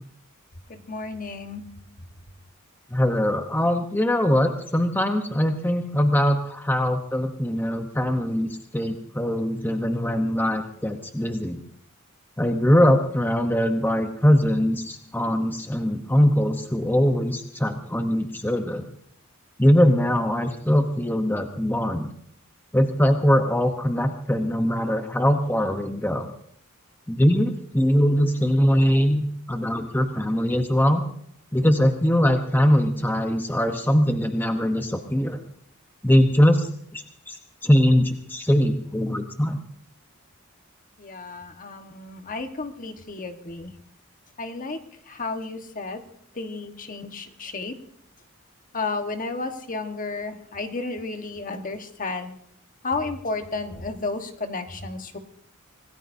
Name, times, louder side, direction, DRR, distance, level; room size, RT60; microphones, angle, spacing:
voice 1, 0.7-1.7 41.0-43.7 44.4-46.0 46.3-47.8 48.7-52.3 52.8-55.2, left 3 dB, 40° left, 6 dB, 1.4 m, -32 dB
voice 2, 2.9-11.6 12.4-18.8 19.6-22.1 22.7-26.3 27.1-31.0 31.5-35.4 36.0-36.7 36.9-39.6, equal, 10° left, 5 dB, 1.0 m, -22 dB
26.0 x 18.0 x 2.7 m, 0.66 s
head